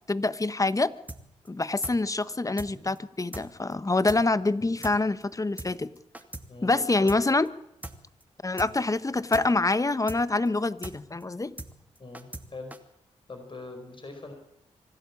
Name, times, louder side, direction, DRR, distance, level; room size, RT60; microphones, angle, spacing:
voice 1, 0.1-0.9 1.5-5.9 6.6-7.5 8.4-11.5, left 2 dB, 25° left, 15 dB, 1.2 m, -26 dB
sound 1, 1.1-1.2 1.5-1.6 1.8-2.0 2.2-2.3 2.6-2.7 3.0-3.1 3.3-3.5 3.7-3.8 4.1-4.2 4.5-4.6 4.8-5.0 5.2-5.3 5.6-5.7 6.0-6.5 6.7-6.8 7.1-7.2 7.5-7.6 7.8-8.0 8.2-8.3 8.6-8.7 9.0-9.1 9.3-9.5 9.7-9.8 10.1-10.2 10.5-10.6 10.8-11.0 11.2-11.3 11.6-11.7 12.0-12.5 12.7-12.8, right 1 dB, 10° right, 2.7 m, -39 dB
voice 2, 6.5-7.1 12.0-12.7 13.3-14.3, left 3 dB, 40° left, 5 dB, 5.1 m, -42 dB
25.5 x 12.0 x 8.6 m, 0.77 s
supercardioid pair, 50°, 13 cm